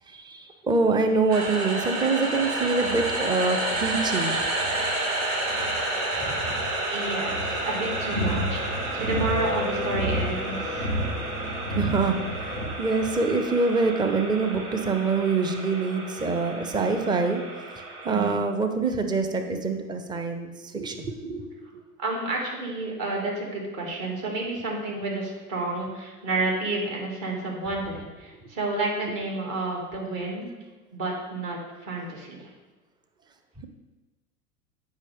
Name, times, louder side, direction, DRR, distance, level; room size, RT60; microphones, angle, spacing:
voice 1, 0.1-4.4 6.2-6.6 11.7-17.4 18.0-21.8 33.6-33.7, right 3 dB, 10° right, 6 dB, 0.5 m, -25 dB
sound 1, 1.3-18.3, right 2 dB, 60° right, 1.9 m, -31 dB
sound 2, 2.3-12.7, equal, 85° right, 1.9 m, -33 dB
voice 2, 6.9-10.9 18.1-18.4 22.0-30.5 30.9-32.5, right 2 dB, 40° right, -1 dB, 2.2 m, -30 dB
8.2 x 5.4 x 3.4 m, 1.2 s
hypercardioid pair, 85°, 45 cm